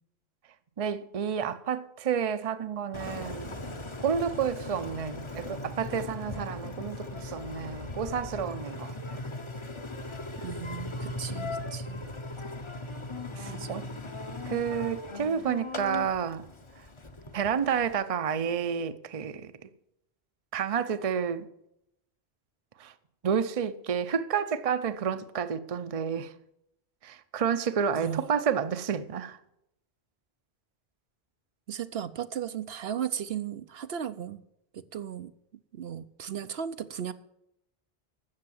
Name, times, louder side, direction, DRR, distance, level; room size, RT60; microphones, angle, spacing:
voice 1, 0.8-3.6 4.0-9.2 13.4-13.9 14.4-16.4 16.8-16.9 17.3-19.7 20.5-21.5 22.8-22.9 23.2-26.3 27.0-29.4, right 7 dB, 40° right, 0.7 m, -30 dB
Engine, 2.9-17.9, left 2 dB, 30° left, 1.0 m, -38 dB
voice 2, 10.4-12.0 13.5-13.8 28.0-28.2 31.7-34.4 34.7-35.3 35.7-37.1, right 9 dB, 70° right, 0.9 m, -36 dB
15.0 x 6.6 x 7.7 m
omnidirectional pair, 1.1 m